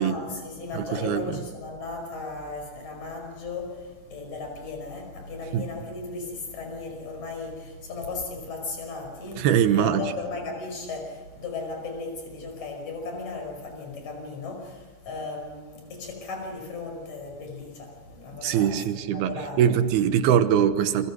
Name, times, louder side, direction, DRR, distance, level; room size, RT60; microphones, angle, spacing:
voice 1, 0.0-9.5 9.7-18.7 19.1-19.7, left 3 dB, 45° left, 3 dB, 6.6 m, -36 dB
voice 2, 0.7-1.4 5.5-5.6 9.4-10.1 18.4-21.1, right 9 dB, 90° right, 10 dB, 3.1 m, -22 dB
28.5 x 25.0 x 6.4 m, 1.3 s
omnidirectional pair, 4.5 m